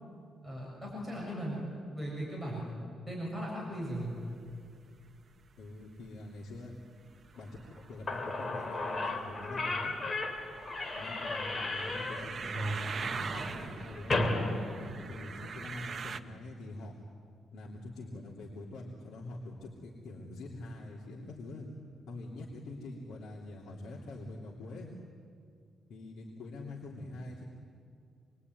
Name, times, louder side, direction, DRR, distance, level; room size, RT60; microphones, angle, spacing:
voice 1, 0.4-2.8 3.1-4.2, equal, 5° left, -4 dB, 6.9 m, -38 dB
sound 1, 3.8-16.2, right 5 dB, 40° right, 1.0 m, -43 dB
voice 2, 5.6-6.7 7.4-7.6 7.9-9.9 10.9-14.2 14.8-16.9 17.5-21.7 22.1-24.9 25.9-27.4, left 2 dB, 85° left, -3 dB, 3.1 m, -44 dB
Slam / Squeak, 7.8-7.9 8.1-15.5, left 2 dB, 30° left, 3.0 m, -35 dB
27.0 x 22.5 x 9.7 m, 2.3 s
cardioid pair, 140°, 0 cm